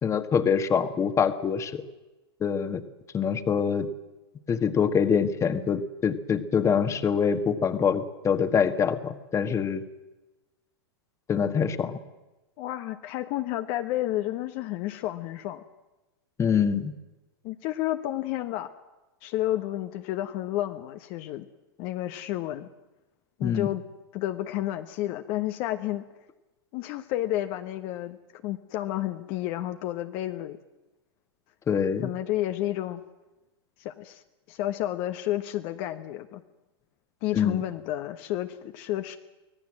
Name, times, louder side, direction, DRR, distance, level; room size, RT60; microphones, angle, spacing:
voice 1, 0.0-1.8 2.4-2.8 3.1-3.9 4.5-9.8 11.3-12.0 16.4-16.9 23.4-23.7 31.7-32.1 37.3-37.6, left 7 dB, 20° left, 10 dB, 1.5 m, -25 dB
voice 2, 12.6-15.6 17.4-18.7 19.2-21.5 21.8-22.7 23.4-23.8 24.1-26.0 26.7-30.6 32.0-33.0 33.8-34.2 34.5-36.4 37.2-39.2, left 14 dB, 45° left, 8 dB, 1.1 m, -31 dB
24.5 x 17.5 x 7.6 m, 1.1 s
hypercardioid pair, 115°, 13 cm